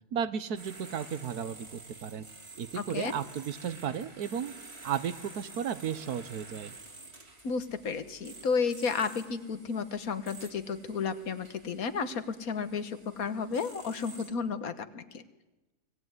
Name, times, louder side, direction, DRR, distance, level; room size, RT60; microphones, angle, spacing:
voice 1, 0.1-2.3 2.6-4.5 4.8-6.7, right 8 dB, 75° right, 14 dB, 1.5 m, -34 dB
sound 1, 0.6-14.3, right 3 dB, 40° right, 2.5 m, -50 dB
voice 2, 2.7-3.1 7.4-15.2, left 5 dB, 65° left, 12 dB, 1.6 m, -32 dB
24.5 x 18.0 x 9.5 m, 1.1 s
omnidirectional pair, 1.7 m